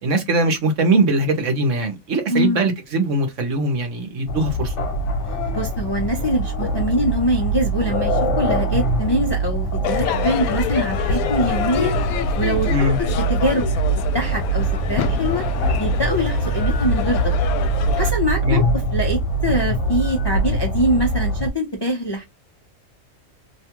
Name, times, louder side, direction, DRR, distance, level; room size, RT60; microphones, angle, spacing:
voice 1, 0.0-4.7 12.7-13.0 18.4-18.6, right 2 dB, 60° right, 1.2 m, -21 dB
voice 2, 2.3-2.7 5.5-11.9 12.3-13.6 14.1-15.5 15.7-17.3 18.0-18.6 18.9-22.2, equal, 40° left, 0.3 m, -23 dB
sound 1, 4.3-21.5, right 1 dB, 60° left, 1.1 m, -23 dB
Crowd / Fireworks, 9.8-18.1, left 6 dB, 85° left, 1.0 m, -27 dB
2.9 x 2.3 x 2.9 m
omnidirectional pair, 1.5 m